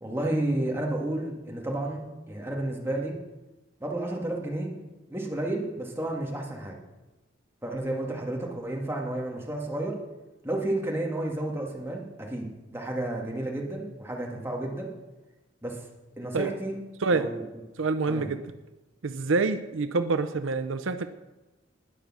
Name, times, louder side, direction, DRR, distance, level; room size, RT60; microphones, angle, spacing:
voice 1, 0.0-3.2 3.8-4.7 5.1-6.8 7.6-10.0 10.4-14.9 15.6-15.8 16.2-16.7 17.1-17.5 18.1-18.3, right 1 dB, 10° right, -1 dB, 2.1 m, -31 dB
voice 2, 17.8-18.4 19.0-21.1, right 3 dB, 85° right, 11 dB, 0.6 m, -26 dB
19.5 x 6.7 x 6.2 m, 1.1 s
head